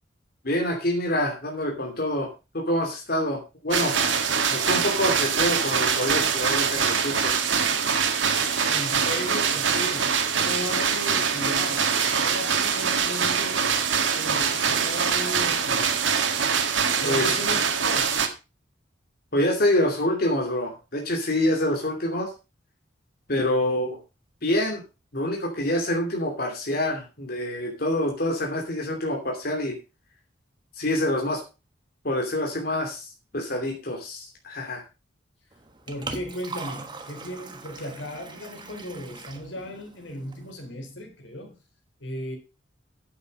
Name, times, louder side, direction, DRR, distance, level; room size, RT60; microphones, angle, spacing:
voice 1, 0.4-4.0 4.5-7.3 17.0-17.3 19.3-22.3 23.3-24.0 24.4-24.8 25.1-29.8 30.7-31.4 32.0-34.8, left 1 dB, 50° left, 2.8 m, -26 dB
sound 1, 3.7-18.3, right 6 dB, 80° right, 1.8 m, -24 dB
voice 2, 8.7-13.8 14.1-16.0 17.0-18.3 35.9-41.6 42.0-42.4, left 1 dB, 80° left, 3.8 m, -36 dB
Liquid, 35.5-40.5, right 3 dB, 25° right, 1.3 m, -41 dB
9.8 x 8.2 x 5.3 m
head